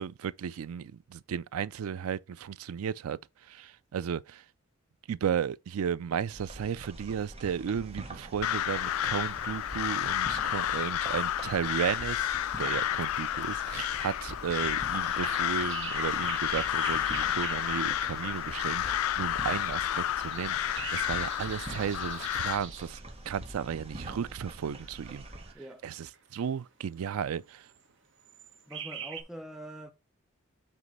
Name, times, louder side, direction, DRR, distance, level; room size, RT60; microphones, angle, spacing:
voice 1, 0.0-4.4 5.1-23.0 23.3-25.2 25.8-27.7, right 7 dB, 90° right, 0.4 m, -34 dB
sound 1, 6.3-25.5, right 1 dB, 30° right, 1.0 m, -45 dB
Crow, 8.4-22.6, left 11 dB, 85° left, 0.3 m, -31 dB
sound 2, 11.0-18.9 19.8-22.9 24.4-25.6 26.1-26.5 27.5-27.9 28.2-29.2, right 8 dB, 60° right, 1.2 m, -45 dB
voice 2, 25.5-25.8 28.7-29.9, equal, ahead, 0.6 m, -44 dB
8.0 x 3.1 x 5.3 m
head